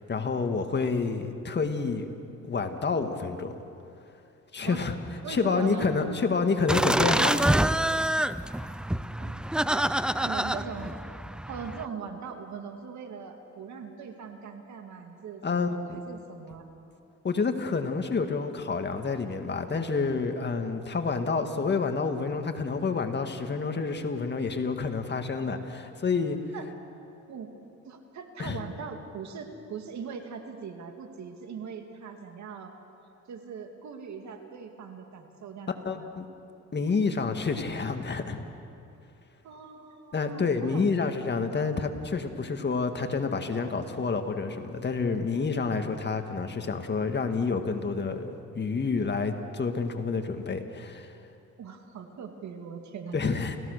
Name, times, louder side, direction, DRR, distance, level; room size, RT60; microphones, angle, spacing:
voice 1, 0.0-2.1 2.4-3.6 4.5-4.9 5.3-8.0 15.4-16.0 17.2-26.4 28.4-28.6 35.9-36.3 36.7-38.4 40.1-51.1 53.1-53.6, left 4 dB, 35° left, 6 dB, 1.8 m, -29 dB
voice 2, 5.2-5.9 9.2-9.4 9.6-11.0 11.5-16.7 26.5-26.7 27.3-27.5 27.8-32.7 33.3-36.1 39.4-40.9 51.6-53.2, right 6 dB, 70° right, 5 dB, 2.3 m, -41 dB
sound 1, 6.7-11.8, right 1 dB, 5° right, 0.4 m, -26 dB
29.0 x 16.0 x 6.6 m, 2.6 s
cardioid pair, 90°, 30 cm